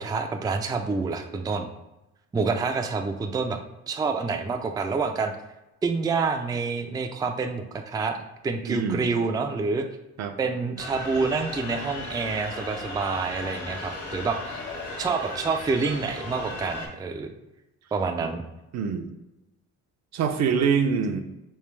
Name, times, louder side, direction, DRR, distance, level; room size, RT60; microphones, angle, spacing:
voice 1, 0.0-1.7 2.3-3.6 3.9-5.3 5.8-9.8 10.4-14.6 15.0-17.3 17.9-18.4, right 4 dB, 15° right, 5 dB, 0.3 m, -27 dB
voice 2, 8.6-9.1 10.2-10.3 18.2-18.3 18.7-19.2 20.1-21.2, right 6 dB, 65° right, 7 dB, 0.5 m, -25 dB
sound 1, 10.8-16.9, left 2 dB, 55° left, 1.2 m, -36 dB
3.3 x 3.2 x 3.1 m, 0.96 s
cardioid pair, 90°, 30 cm